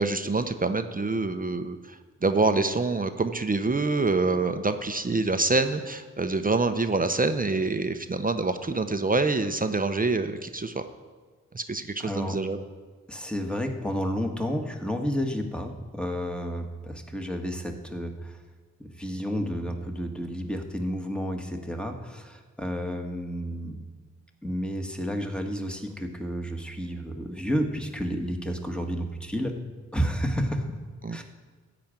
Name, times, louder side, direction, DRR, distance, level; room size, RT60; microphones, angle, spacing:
voice 1, 0.0-10.9 11.5-12.6 31.0-31.2, right 3 dB, 30° right, 8 dB, 0.8 m, -26 dB
voice 2, 12.0-12.4 13.1-18.4 18.8-23.7 24.4-29.5 29.9-30.7 31.1-31.2, equal, 5° left, 4 dB, 1.7 m, -31 dB
13.5 x 5.2 x 8.9 m, 1.4 s
cardioid pair, 50°, 30 cm